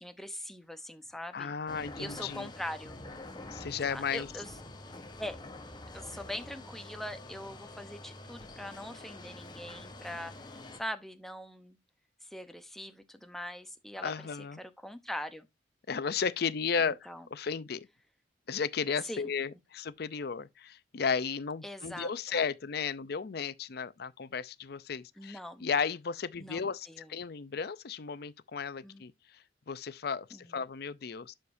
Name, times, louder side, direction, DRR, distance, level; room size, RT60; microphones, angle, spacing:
voice 1, 0.0-1.5 2.0-3.0 3.9-4.6 5.2-5.4 5.9-10.3 10.8-11.8 12.2-14.1 14.6-15.5 16.8-17.3 19.0-19.3 21.6-22.4 25.2-25.6 26.4-27.2 28.8-29.0 30.3-30.6, equal, ahead, 0.8 m, -42 dB
voice 2, 1.3-2.5 3.5-4.3 14.0-14.6 15.9-17.0 17.3-17.9 18.5-29.1 29.7-31.3, left 6 dB, 55° left, 0.5 m, -34 dB
sound 1, 1.7-10.8, left 2 dB, 25° left, 1.1 m, -46 dB
11.5 x 5.0 x 2.6 m
head